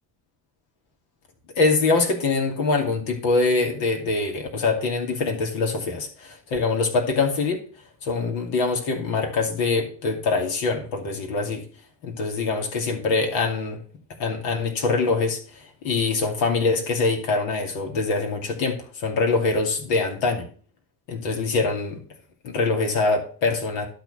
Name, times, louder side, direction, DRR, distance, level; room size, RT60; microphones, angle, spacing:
voice 1, 1.6-7.6 8.0-11.6 12.0-13.8 14.2-20.5 21.1-22.0 22.4-23.9, left 3 dB, 70° left, 2 dB, 2.7 m, -24 dB
12.0 x 4.8 x 6.6 m, 0.42 s
hypercardioid pair, 55°, 47 cm